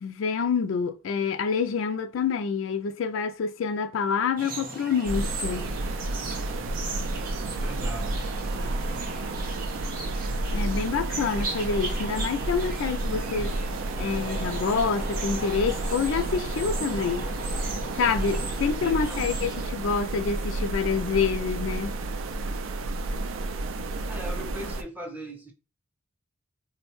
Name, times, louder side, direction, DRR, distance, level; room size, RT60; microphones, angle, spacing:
voice 1, 0.0-5.7 10.5-13.6 14.0-17.3 18.0-21.9, left 5 dB, 70° left, 0.3 m, -27 dB
sound 1, 4.4-19.7, right 2 dB, 45° right, 0.7 m, -37 dB
sound 2, 5.1-24.8, right 2 dB, 75° right, 0.4 m, -31 dB
voice 2, 7.6-8.3 18.3-19.6 24.1-25.5, right 1 dB, 10° right, 0.5 m, -40 dB
3.8 x 2.1 x 3.0 m
head